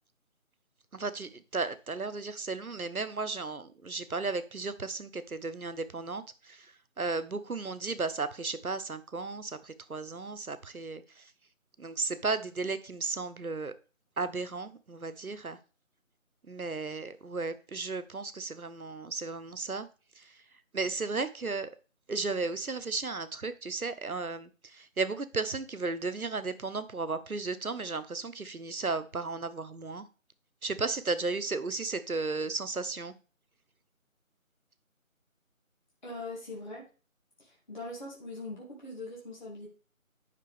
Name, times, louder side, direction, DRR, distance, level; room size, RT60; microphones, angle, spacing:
voice 1, 0.9-11.3 11.8-13.7 14.2-15.6 16.5-19.9 20.1-20.4 20.7-21.7 22.1-30.1 30.6-33.1, right 3 dB, 90° right, 1.1 m, -34 dB
voice 2, 36.0-36.8 37.4-39.7, left 2 dB, 35° left, 2.1 m, -41 dB
9.9 x 6.0 x 3.5 m
figure-of-eight pair, 165°, 42 cm